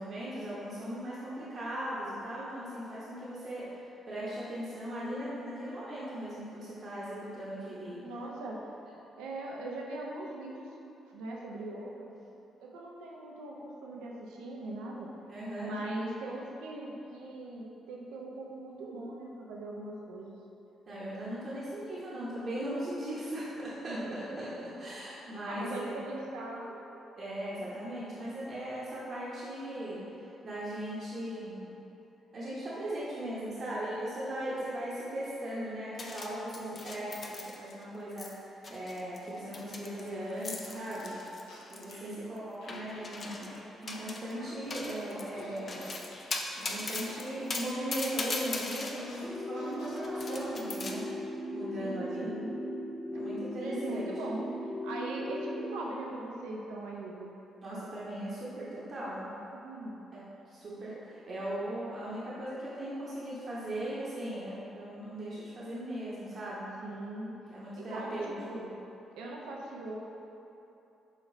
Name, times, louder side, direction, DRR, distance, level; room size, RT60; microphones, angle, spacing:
voice 1, 0.0-8.0 15.3-15.7 20.9-25.9 27.2-31.7 32.3-41.2 41.7-43.5 43.8-45.9 46.6-51.1 51.5-52.4 53.1-54.1 57.6-59.3 60.1-66.7 67.5-68.3, right 1 dB, 50° right, -8 dB, 0.9 m, -38 dB
voice 2, 8.0-8.7 9.2-10.8 11.1-12.2 12.6-15.1 15.6-20.4 23.9-24.4 25.4-26.8 36.6-37.1 42.0-42.4 51.8-52.6 53.6-57.3 59.5-60.0 66.8-67.4 67.8-68.8 69.2-70.0, right 2 dB, 75° right, -2 dB, 0.4 m, -40 dB
sound 1, 36.0-37.8 38.1-38.3 38.6-42.1 42.7-43.6 43.9-44.3 44.7-48.9 49.7-50.9, left 3 dB, 45° left, 0.5 m, -39 dB
sound 2, 39.7-42.1 42.6-50.6, equal, 80° left, 0.7 m, -49 dB
sound 3, 49.2-55.8, equal, 10° right, 0.5 m, -38 dB
5.1 x 3.8 x 2.6 m, 2.9 s
hypercardioid pair, 45°, 0 cm